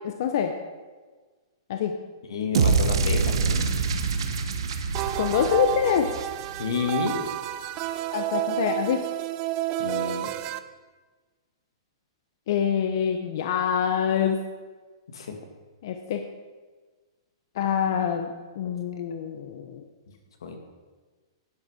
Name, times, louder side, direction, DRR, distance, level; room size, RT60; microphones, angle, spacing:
voice 1, 0.0-0.5 1.7-1.9 5.2-6.1 8.1-9.0 12.5-14.4 15.8-16.2 17.6-18.3 18.6-19.8, left 8 dB, 45° left, 5 dB, 0.7 m, -25 dB
voice 2, 2.3-3.7 6.6-7.3 9.8-10.3 15.1-15.4 20.4-20.6, left 5 dB, 75° left, 4 dB, 1.9 m, -30 dB
sound 1, 2.5-6.8, right 5 dB, 65° right, 1.1 m, -25 dB
sound 2, 4.9-10.6, right 14 dB, 25° right, 0.4 m, -30 dB
10.5 x 9.4 x 5.0 m, 1.4 s
hypercardioid pair, 175°, 3 cm